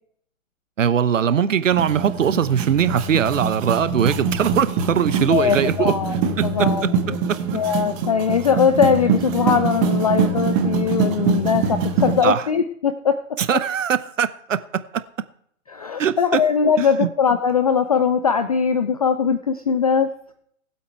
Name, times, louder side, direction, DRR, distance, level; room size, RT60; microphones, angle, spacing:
voice 1, 0.8-5.9 6.4-6.9 7.3-7.4 12.2-12.4 13.4-14.8 16.0-16.4 16.8-17.1, right 8 dB, 65° right, 1.0 m, -21 dB
sound 1, 1.7-12.2, right 5 dB, 25° right, 1.3 m, -24 dB
voice 2, 5.3-6.2 6.4-6.9 7.5-13.1 15.7-20.1, left 6 dB, 30° left, 0.4 m, -20 dB
19.0 x 8.0 x 4.6 m
figure-of-eight pair, 130°, 41 cm